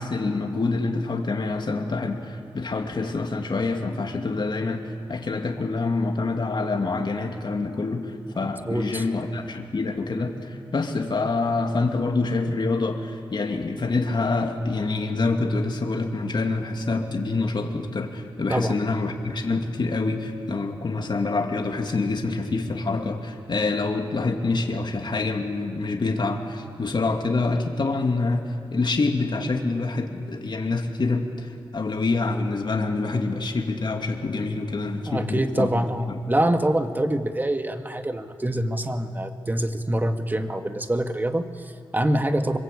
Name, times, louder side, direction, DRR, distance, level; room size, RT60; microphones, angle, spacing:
voice 1, 0.0-28.4 28.7-35.7 36.1-36.2, left 3 dB, 55° left, 3 dB, 2.5 m, -26 dB
voice 2, 8.7-9.0 18.5-18.8 35.1-42.6, right 1 dB, 20° right, 6 dB, 1.9 m, -25 dB
25.5 x 22.5 x 8.5 m, 2.3 s
cardioid pair, 60°, 9 cm